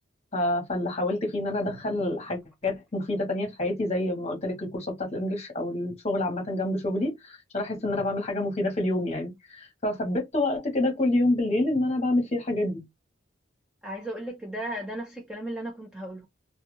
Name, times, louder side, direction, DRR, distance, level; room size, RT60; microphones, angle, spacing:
voice 1, 0.3-12.8, left 1 dB, 30° left, 1.0 m, -27 dB
voice 2, 13.8-16.3, right 1 dB, 5° right, 0.5 m, -35 dB
2.3 x 2.2 x 3.0 m
head